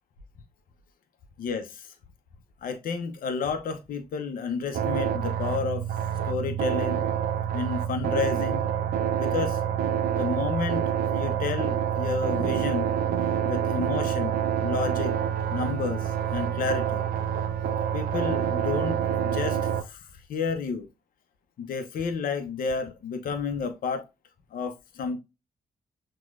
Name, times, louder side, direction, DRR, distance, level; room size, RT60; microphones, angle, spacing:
voice 1, 1.4-1.9 2.6-5.9 6.3-7.1 7.5-8.7 9.2-9.6 10.2-12.9 13.4-15.1 15.5-17.0 17.9-20.9 21.6-24.1 24.5-25.2, left 5 dB, 60° left, 0.7 m, -31 dB
sound 1, 4.7-19.8, right 9 dB, 65° right, 0.5 m, -27 dB
6.0 x 2.3 x 2.4 m
hypercardioid pair, 40°, 17 cm